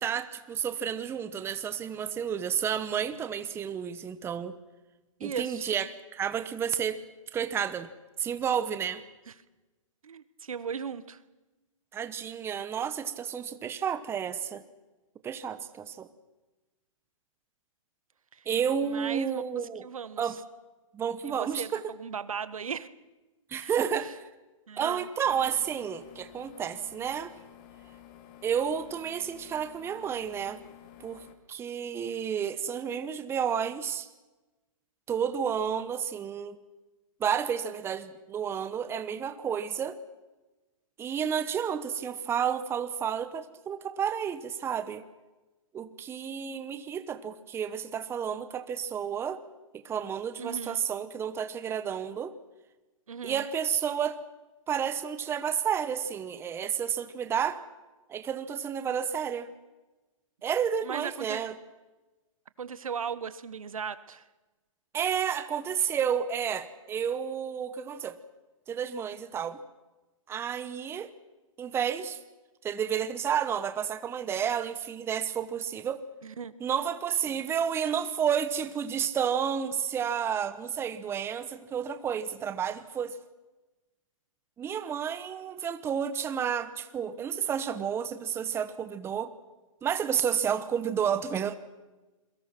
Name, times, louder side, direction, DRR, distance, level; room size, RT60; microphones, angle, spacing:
voice 1, 0.0-4.6 5.2-7.0 7.3-7.9 8.2-9.0 11.9-14.6 15.2-16.1 18.5-19.8 20.2-20.4 20.9-21.8 23.5-24.2 24.8-27.3 28.4-30.6 31.0-31.2 31.5-34.1 35.1-36.6 37.2-40.0 41.0-45.0 45.7-49.4 49.7-52.3 53.2-54.2 54.7-57.6 58.1-59.5 60.4-61.5 64.9-68.2 68.7-69.6 70.3-71.1 71.6-72.2 72.6-76.0 76.6-83.2 84.6-89.3 89.8-91.6, right 8 dB, 15° right, 12 dB, 1.0 m, -31 dB
voice 2, 5.2-5.7 10.0-11.2 18.3-18.4 18.8-19.4 19.8-20.3 21.2-22.9 23.5-23.7 24.7-25.1 50.4-50.8 53.1-53.4 60.8-61.4 62.6-64.2 76.2-76.5 77.3-77.4, right 7 dB, 80° right, 15 dB, 1.4 m, -37 dB
sound 1, 25.2-31.3, left 11 dB, 35° left, 2.5 m, -52 dB
27.0 x 22.5 x 6.1 m, 1.1 s
hypercardioid pair, 135°, 17 cm